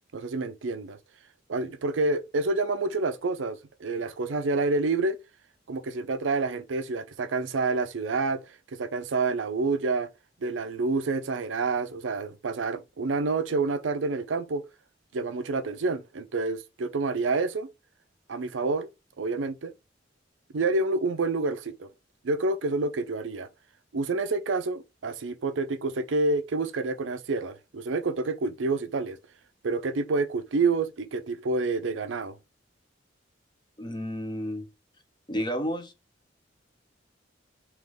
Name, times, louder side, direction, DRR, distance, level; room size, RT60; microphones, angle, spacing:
voice 1, 0.1-1.0 1.5-5.2 5.7-8.4 8.7-10.1 10.4-14.6 15.1-17.7 18.3-18.9 19.2-19.7 20.5-21.9 22.2-23.5 23.9-29.2 29.6-32.3, right 3 dB, 80° right, 0.5 m, -28 dB
voice 2, 33.8-34.7 35.3-35.9, equal, 25° left, 0.7 m, -31 dB
3.5 x 3.0 x 3.6 m
head